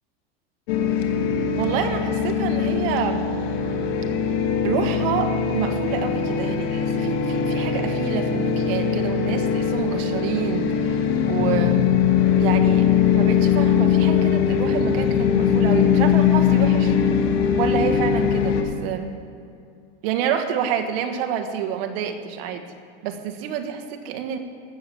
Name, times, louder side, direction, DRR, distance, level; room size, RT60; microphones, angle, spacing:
sound 1, 0.7-18.6, left 7 dB, 80° left, 1.7 m, -21 dB
voice 1, 1.6-3.3 4.6-11.9 12.3-12.9 13.1-17.0 17.6-19.1 20.0-22.7 23.0-24.4, right 8 dB, 65° right, 6 dB, 1.6 m, -28 dB
14.5 x 6.9 x 7.8 m, 2.5 s
supercardioid pair, 140°, 31 cm